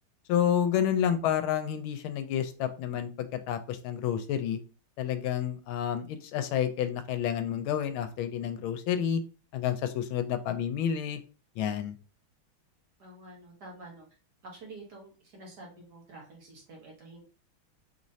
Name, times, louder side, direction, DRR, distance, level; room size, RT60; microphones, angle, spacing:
voice 1, 0.3-4.6 5.0-9.2 9.5-11.2 11.6-12.0, left 9 dB, 85° left, 10 dB, 1.4 m, -29 dB
voice 2, 13.0-14.1 14.4-17.2, right 2 dB, 55° right, -2 dB, 1.8 m, -48 dB
5.3 x 3.1 x 2.7 m, 0.36 s
omnidirectional pair, 2.3 m